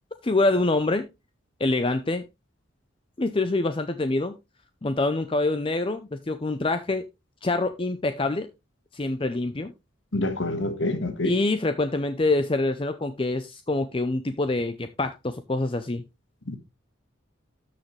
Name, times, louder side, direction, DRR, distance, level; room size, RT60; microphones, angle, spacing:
voice 1, 0.2-1.1 1.6-2.2 3.2-4.3 4.8-7.0 7.4-8.5 8.9-9.7 11.2-16.0, left 2 dB, 25° left, 0.5 m, -25 dB
voice 2, 10.1-11.3 16.5-16.6, left 2 dB, 70° left, 1.5 m, -27 dB
13.0 x 6.6 x 3.2 m
head